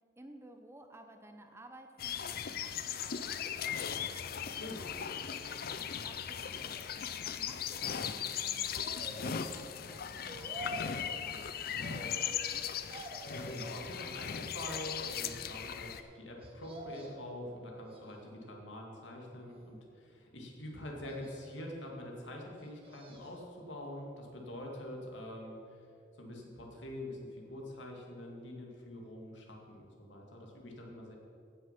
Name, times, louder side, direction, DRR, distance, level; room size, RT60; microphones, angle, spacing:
voice 1, 0.2-2.7 3.0-4.0 6.0-12.6, right 1 dB, 15° right, 5 dB, 0.7 m, -56 dB
sound 1, 2.0-16.0, left 8 dB, 50° left, 0.5 m, -38 dB
voice 2, 4.6-5.4 13.3-25.8 26.2-31.2, left 1 dB, 75° left, 0 dB, 2.2 m, -45 dB
sound 2, 8.8-9.6 10.3-11.1 11.8-12.6 12.9-13.8 14.4-15.2 16.4-17.3 17.8-18.5 19.2-20.0 21.0-21.8 22.5-23.5 23.8-23.9, equal, 30° right, 1.4 m, -48 dB
15.5 x 6.5 x 5.8 m, 2.4 s
head